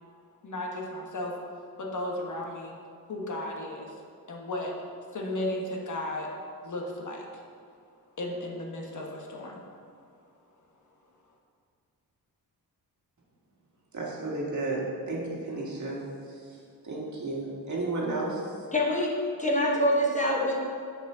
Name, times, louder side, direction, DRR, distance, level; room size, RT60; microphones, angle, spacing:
voice 1, 0.4-1.3 1.8-2.7 3.1-3.9 4.3-4.7 5.1-6.3 6.6-7.3 8.2-9.6, left 1 dB, 50° left, 0 dB, 1.1 m, -34 dB
voice 2, 13.9-16.0 16.4-16.5 16.8-18.5, right 2 dB, 45° right, -3 dB, 1.8 m, -32 dB
voice 3, 18.7-20.6, left 1 dB, 20° left, -2 dB, 1.1 m, -25 dB
9.2 x 5.0 x 3.8 m, 2.4 s
cardioid pair, 95°, 39 cm